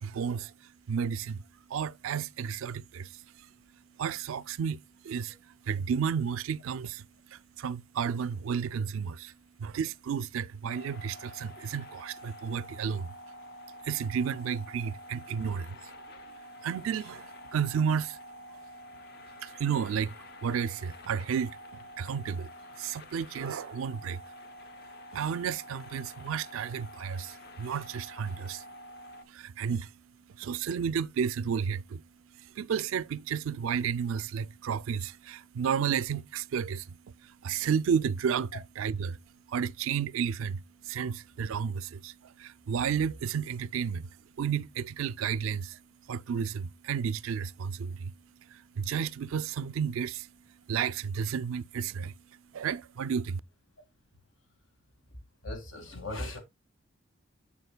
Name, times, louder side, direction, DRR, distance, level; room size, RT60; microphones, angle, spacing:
voice 1, 0.0-0.5 0.9-1.4 1.7-3.5 4.0-9.3 9.6-13.1 13.8-15.9 16.6-18.2 19.4-20.2 20.4-21.5 22.0-22.5 22.8-24.2 25.1-28.6 29.3-29.9 30.3-32.0 32.3-39.2 39.5-45.8 46.1-48.1 48.5-50.3 50.7-52.1 52.5-53.4, right 7 dB, 80° right, 0.3 m, -32 dB
sound 1, 10.7-29.2, left 1 dB, 50° left, 0.8 m, -48 dB
voice 2, 55.4-56.4, left 1 dB, 75° left, 1.9 m, -37 dB
7.2 x 6.7 x 2.2 m
head